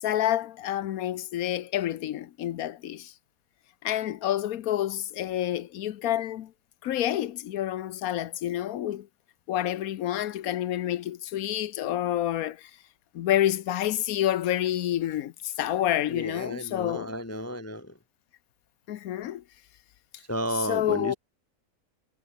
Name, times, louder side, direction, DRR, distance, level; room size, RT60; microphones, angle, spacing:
voice 1, 0.0-3.1 3.8-6.5 6.8-9.1 9.5-12.7 13.1-17.1 18.9-19.4 20.6-21.2, left 12 dB, 80° left, 1.2 m, -28 dB
voice 2, 16.1-18.0 20.3-21.1, equal, 15° left, 0.6 m, -32 dB
omnidirectional pair, 1.5 m